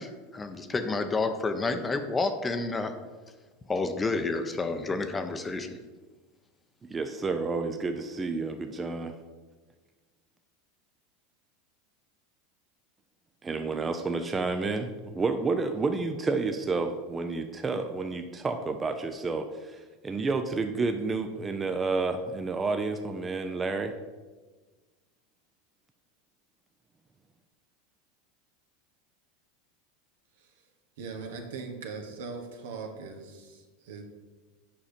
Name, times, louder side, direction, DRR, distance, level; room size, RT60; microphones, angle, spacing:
voice 1, 0.0-2.9 3.7-5.8, left 3 dB, 20° left, 8 dB, 0.7 m, -30 dB
voice 2, 6.9-9.2 13.4-23.9, right 3 dB, 20° right, 6 dB, 0.5 m, -30 dB
voice 3, 31.0-34.0, right 4 dB, 75° right, 4 dB, 1.1 m, -40 dB
7.4 x 5.0 x 4.3 m, 1.3 s
hypercardioid pair, 95°, 0 cm